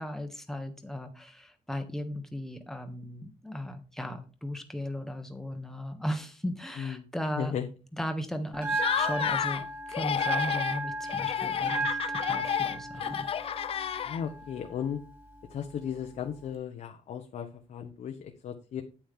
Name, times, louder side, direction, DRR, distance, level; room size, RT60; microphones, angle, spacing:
voice 1, 0.0-7.5 8.0-9.6 9.9-13.3, equal, 5° left, 6 dB, 1.4 m, -36 dB
voice 2, 7.4-7.7 14.0-15.0 15.5-18.8, left 8 dB, 75° left, 3 dB, 1.1 m, -35 dB
Bell, 8.5-16.5, right 2 dB, 15° right, 3.6 m, -36 dB
Laughter, 8.7-9.6 9.9-10.8 11.1-14.4, left 9 dB, 50° left, 0.4 m, -31 dB
9.0 x 8.6 x 3.8 m, 0.35 s
wide cardioid pair, 130°, 13 cm